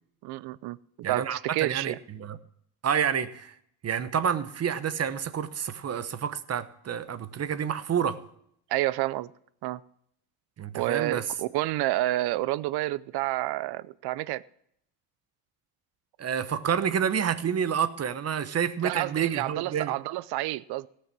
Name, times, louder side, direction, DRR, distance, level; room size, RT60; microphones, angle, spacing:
voice 1, 0.2-0.8 1.1-2.0 8.7-9.3 9.6-9.8 10.7-14.4 18.8-20.9, right 17 dB, 65° right, 20 dB, 0.7 m, -29 dB
voice 2, 1.0-2.4 2.8-3.6 3.8-8.2 10.6-11.2 16.2-19.9, right 8 dB, 35° right, 13 dB, 1.1 m, -29 dB
17.5 x 6.6 x 6.1 m, 0.69 s
supercardioid pair, 95°, 42 cm